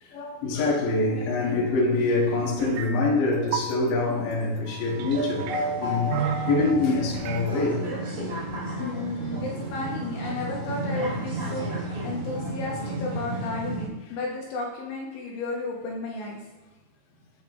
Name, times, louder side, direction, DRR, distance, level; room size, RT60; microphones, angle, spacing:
voice 1, 0.0-6.2 6.5-8.6, left 3 dB, 55° left, -2 dB, 2.7 m, -25 dB
sound 1, 2.6-2.9 3.2-3.7 4.7-5.6 6.1-6.7 7.1-7.5, right 10 dB, 90° right, 2.6 m, -32 dB
sound 2, 4.9-13.9, right 1 dB, 20° right, 1.6 m, -32 dB
voice 2, 8.8-16.4, left 2 dB, 75° left, -2 dB, 3.3 m, -33 dB
8.6 x 8.4 x 3.2 m, 1.1 s
omnidirectional pair, 6.0 m